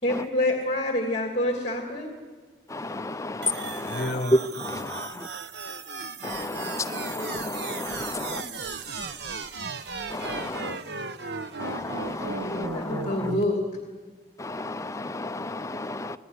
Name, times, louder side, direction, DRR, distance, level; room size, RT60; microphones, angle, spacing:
voice 1, 0.0-2.1 7.1-7.6 12.4-13.6, left 1 dB, 35° left, 2.9 m, -27 dB
voice 2, 2.7-5.3 6.2-8.4 10.1-10.8 11.6-13.3 14.4-16.2, left 1 dB, 20° left, 0.7 m, -31 dB
sound 1, 3.4-13.4, right 4 dB, 70° right, 1.1 m, -36 dB
voice 3, 3.6-4.3 4.8-5.0 8.1-9.4 10.3-11.1 11.5-12.1, left 1 dB, 55° left, 1.2 m, -38 dB
27.5 x 19.0 x 10.0 m
head